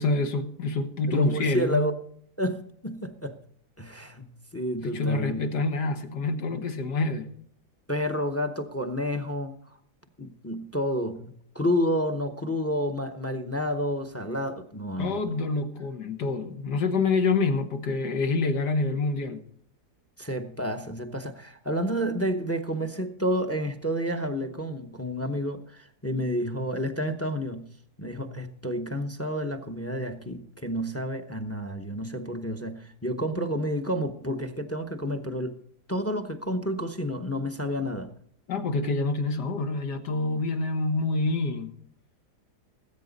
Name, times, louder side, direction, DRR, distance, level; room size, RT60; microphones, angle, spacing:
voice 1, 0.0-1.9 4.8-7.3 15.0-19.4 38.5-41.7, left 3 dB, 85° left, 1.9 m, -27 dB
voice 2, 1.1-1.9 2.4-3.4 3.8-5.5 6.5-6.7 7.9-9.6 10.2-15.4 20.2-27.7 28.0-35.6 35.9-38.1, equal, 15° left, 0.6 m, -30 dB
19.0 x 8.8 x 4.0 m
omnidirectional pair, 1.7 m